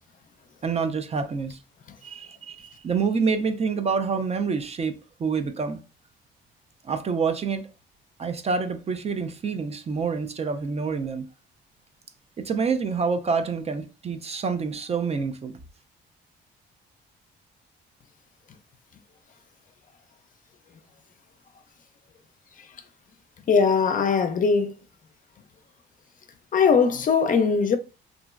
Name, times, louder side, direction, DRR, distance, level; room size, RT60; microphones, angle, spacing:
voice 1, 0.6-1.6 2.0-4.9 5.2-5.8 6.8-7.7 8.2-11.3 12.4-15.5, right 5 dB, 30° right, 0.4 m, -27 dB
voice 2, 23.5-24.8 26.5-27.8, left 5 dB, 40° left, 0.4 m, -20 dB
2.9 x 2.4 x 2.4 m
cardioid pair, 90°, 20 cm